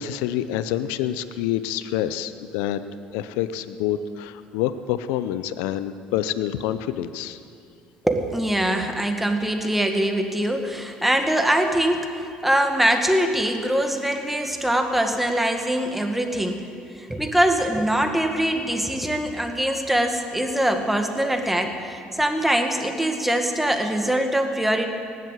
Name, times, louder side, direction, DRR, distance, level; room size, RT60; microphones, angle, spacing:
voice 1, 0.0-2.8 3.1-7.4, left 11 dB, 85° left, 12 dB, 0.6 m, -27 dB
voice 2, 8.0-16.6 17.0-24.9, right 1 dB, 5° right, 5 dB, 1.7 m, -23 dB
18.5 x 7.6 x 8.2 m, 2.5 s
supercardioid pair, 80°, 3 cm